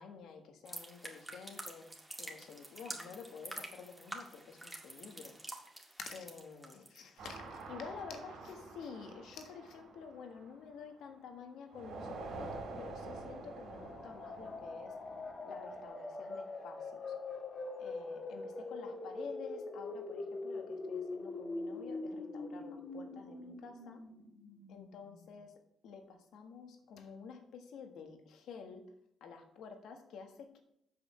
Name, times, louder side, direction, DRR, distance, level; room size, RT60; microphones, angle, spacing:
voice 1, 0.0-1.9 2.2-5.3 6.0-15.0 15.5-17.0 17.8-24.0 24.7-28.9 29.2-30.6, left 6 dB, 80° left, 5 dB, 1.6 m, -50 dB
sound 1, 0.6-7.0 7.3-7.6, right 1 dB, 10° right, 2.0 m, -48 dB
sound 2, 7.2-11.2 11.7-15.9, right 3 dB, 75° right, 2.9 m, -48 dB
sound 3, 13.6-25.3, left 3 dB, 45° left, 1.8 m, -43 dB
8.0 x 5.1 x 7.3 m, 0.75 s
cardioid pair, 90°, 0 cm